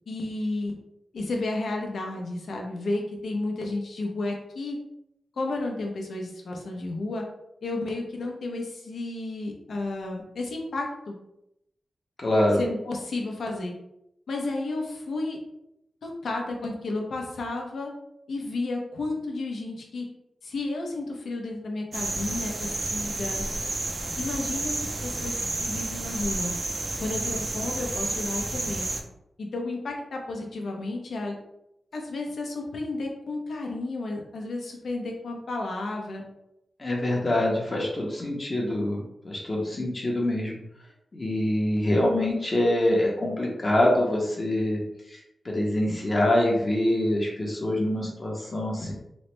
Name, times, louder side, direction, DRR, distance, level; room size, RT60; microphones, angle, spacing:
voice 1, 0.1-0.8 1.1-4.8 5.4-7.2 7.6-11.2 12.6-13.7 14.3-15.4 16.0-17.9 18.3-20.1 20.4-23.4 24.2-26.5 27.0-28.9 29.4-31.4 31.9-36.2, left 2 dB, 80° left, 1 dB, 0.6 m, -32 dB
voice 2, 12.2-12.6 36.8-40.6 41.1-44.8 45.1-48.9, left 1 dB, 40° left, -2 dB, 0.8 m, -25 dB
sound 1, 21.9-29.0, right 2 dB, 45° right, 0.4 m, -31 dB
3.1 x 2.1 x 3.0 m, 0.81 s
wide cardioid pair, 80°, 0 cm